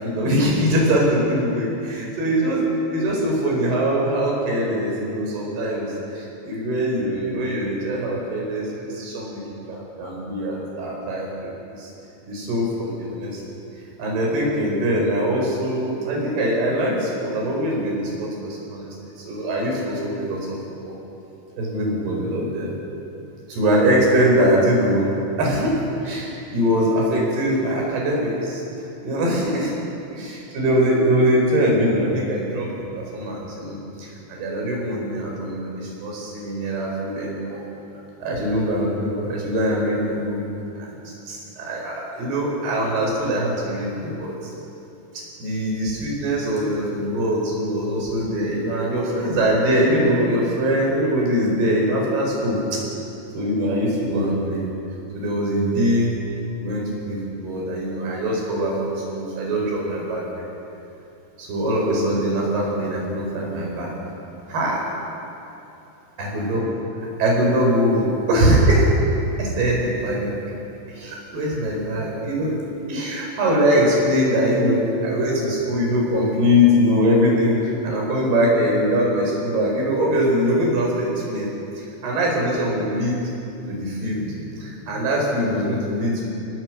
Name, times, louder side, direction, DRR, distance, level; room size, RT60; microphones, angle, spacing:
voice 1, 0.0-2.6 2.9-11.9 12.3-13.4 14.0-18.9 19.2-20.6 20.8-20.9 21.6-22.7 23.5-25.1 25.4-28.6 29.0-29.7 30.1-37.6 38.2-40.4 40.8-44.4 45.1-52.8 53.3-54.6 55.1-56.2 56.6-60.3 61.4-64.0 64.5-64.8 66.2-66.6 67.2-68.9 69.4-70.3 70.9-72.6 72.9-81.5 81.8-83.2 83.7-86.3, equal, 60° right, -2 dB, 6.6 m, -22 dB
26.0 x 19.0 x 6.2 m, 2.9 s
omnidirectional pair, 5.3 m